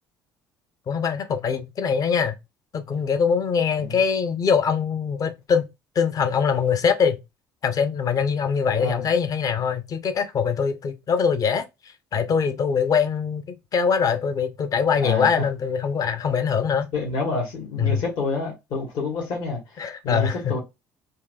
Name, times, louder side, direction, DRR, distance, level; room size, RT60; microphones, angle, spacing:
voice 1, 0.9-2.4 2.7-5.7 5.9-7.2 7.6-11.7 12.1-16.9 17.8-18.0 19.8-20.6, left 6 dB, 40° left, 0.7 m, -23 dB
voice 2, 8.7-9.0 14.9-15.3 16.9-20.6, left 3 dB, 55° left, 1.6 m, -28 dB
4.5 x 2.7 x 2.3 m
figure-of-eight pair, 55°, 9 cm